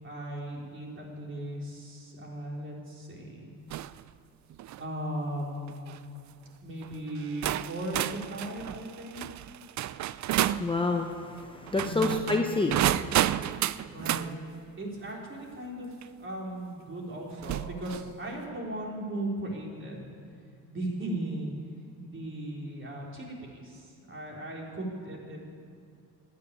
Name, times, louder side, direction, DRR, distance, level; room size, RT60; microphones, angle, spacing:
voice 1, 0.0-3.5 4.8-6.0 6.6-9.3 11.8-12.2 13.9-14.3 14.8-15.9 16.2-20.1 20.7-21.5 22.0-25.4, right 1 dB, 35° right, -2 dB, 3.6 m, -37 dB
sound 1, 3.7-4.0 4.5-4.8 5.7-6.0 6.8-6.9 7.4-10.7 11.7-14.3 16.0-16.1 17.4-18.1, right 13 dB, 55° right, 0.4 m, -30 dB
voice 2, 10.5-13.2, left 3 dB, 15° left, 3 dB, 0.8 m, -29 dB
12.5 x 9.8 x 9.7 m, 2.3 s
cardioid pair, 100°, 35 cm